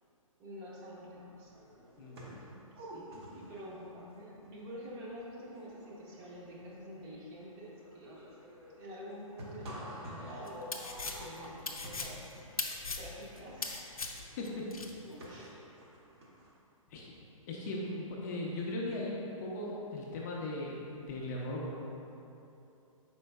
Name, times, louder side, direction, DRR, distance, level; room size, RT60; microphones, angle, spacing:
voice 1, 0.4-1.5 2.3-2.4 2.9-8.4 8.7-10.6 11.0-12.3 13.0-13.9 15.0-15.6, equal, 25° right, -5 dB, 0.8 m, -48 dB
sound 1, 1.1-1.2 1.4-16.5, equal, 45° right, 1.0 m, -49 dB
voice 2, 2.0-2.3 14.4-14.7 16.9-17.1 17.5-22.0, left 1 dB, 30° left, -3 dB, 0.5 m, -38 dB
sound 2, 10.5-14.9, left 4 dB, 90° left, 0.5 m, -39 dB
5.1 x 4.4 x 2.2 m, 2.9 s
figure-of-eight pair, 125°, 18 cm